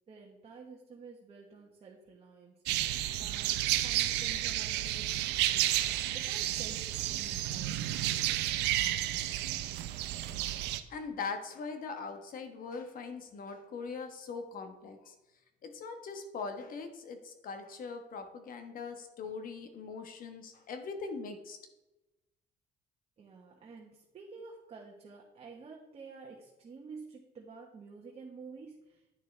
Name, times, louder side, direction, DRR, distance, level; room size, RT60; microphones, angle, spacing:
voice 1, 0.1-2.6 3.1-8.1 23.2-29.0, right 4 dB, 35° right, -1 dB, 1.3 m, -50 dB
sound 1, 2.7-10.8, right 14 dB, 90° right, 0.6 m, -31 dB
voice 2, 10.9-15.1 15.6-21.6, left 4 dB, 55° left, 6 dB, 1.3 m, -41 dB
9.6 x 6.7 x 3.3 m, 1.0 s
cardioid pair, 110°, 17 cm